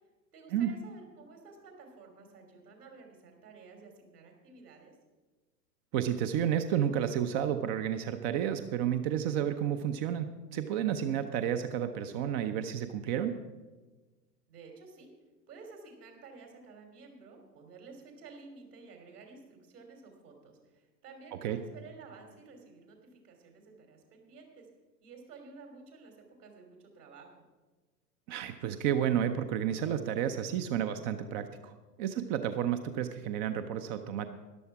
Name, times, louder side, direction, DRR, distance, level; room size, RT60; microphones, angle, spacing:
voice 1, 0.3-4.9 14.5-15.1 15.5-24.7 25.0-27.3, right 4 dB, 65° right, 3 dB, 3.3 m, -52 dB
voice 2, 5.9-13.3 21.4-21.6 28.3-34.3, right 9 dB, 30° right, 8 dB, 0.6 m, -31 dB
13.5 x 11.0 x 4.7 m, 1.3 s
figure-of-eight pair, 90°, 49 cm